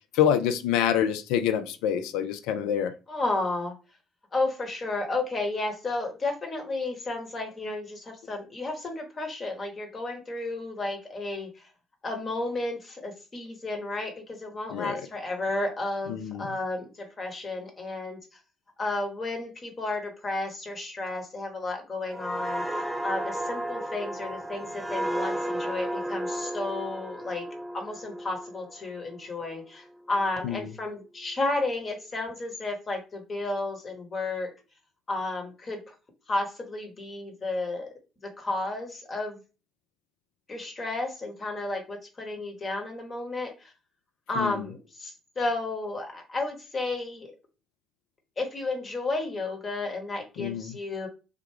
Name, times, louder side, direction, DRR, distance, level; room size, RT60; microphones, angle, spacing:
voice 1, 0.1-2.9 14.7-15.0 16.1-16.5 30.4-30.7 44.4-44.6 50.4-50.7, left 9 dB, 65° left, 0.3 m, -26 dB
voice 2, 3.1-3.7 4.3-11.7 12.0-18.2 18.8-27.5 27.7-34.5 35.1-35.9 36.3-37.9 38.2-39.4 40.5-43.5 44.3-47.3 48.4-51.1, left 2 dB, 35° left, 1.1 m, -32 dB
sound 1, 22.1-29.6 30.0-30.2, right 1 dB, 10° right, 0.4 m, -33 dB
3.4 x 2.2 x 3.3 m
figure-of-eight pair, 50°, 0 cm